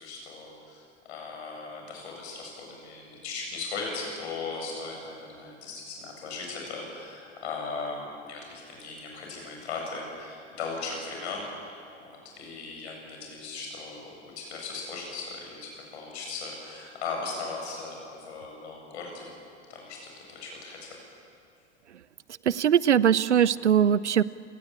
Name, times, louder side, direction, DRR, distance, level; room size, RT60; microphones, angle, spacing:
voice 1, 0.0-11.8 12.1-19.4 19.7-21.0, left 4 dB, 70° left, 0 dB, 7.8 m, -38 dB
voice 2, 22.5-24.2, right 9 dB, 85° right, 20 dB, 0.7 m, -21 dB
29.0 x 18.5 x 8.7 m, 2.4 s
figure-of-eight pair, 70°, 34 cm